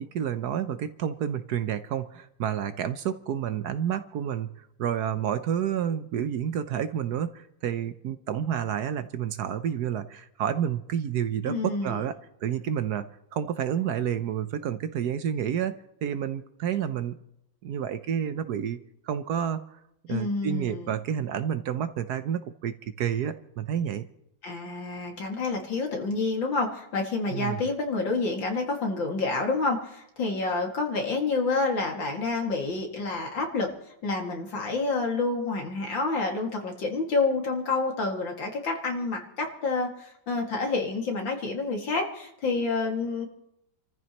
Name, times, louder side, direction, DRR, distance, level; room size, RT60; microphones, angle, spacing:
voice 1, 0.0-4.5 4.8-12.1 12.4-13.1 13.3-15.7 16.0-17.2 17.6-18.8 19.0-19.6 20.1-24.0 27.3-27.6, right 9 dB, 65° right, 11 dB, 1.1 m, -29 dB
voice 2, 11.5-12.0 20.1-21.0 24.4-33.7 34.0-43.3, left 3 dB, 80° left, 2 dB, 2.9 m, -28 dB
29.5 x 14.0 x 3.0 m, 0.81 s
omnidirectional pair, 2.0 m